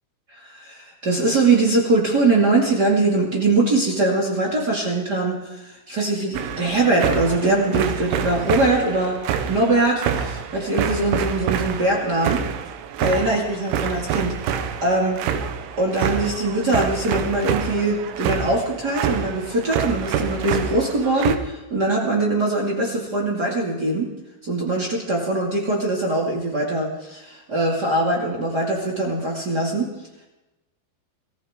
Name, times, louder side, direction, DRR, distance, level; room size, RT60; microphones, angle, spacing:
voice 1, 0.4-9.2 9.5-12.4 13.0-14.5 14.8-15.2 15.8-24.1 24.4-29.9, right 2 dB, 35° right, -1 dB, 1.5 m, -22 dB
sound 1, 6.3-21.4, right 8 dB, 85° right, 3.5 m, -27 dB
25.0 x 15.0 x 3.7 m, 1.0 s
omnidirectional pair, 5.7 m